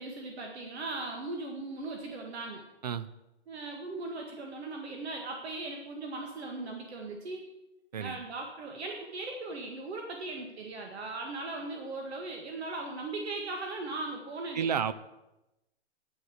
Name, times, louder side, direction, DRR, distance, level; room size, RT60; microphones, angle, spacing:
voice 1, 0.0-2.6 3.5-7.4 8.0-14.7, right 2 dB, 70° right, 2 dB, 1.9 m, -38 dB
voice 2, 14.5-14.9, right 7 dB, 40° right, 15 dB, 0.4 m, -30 dB
9.5 x 9.3 x 6.4 m, 0.97 s
hypercardioid pair, 165°, 34 cm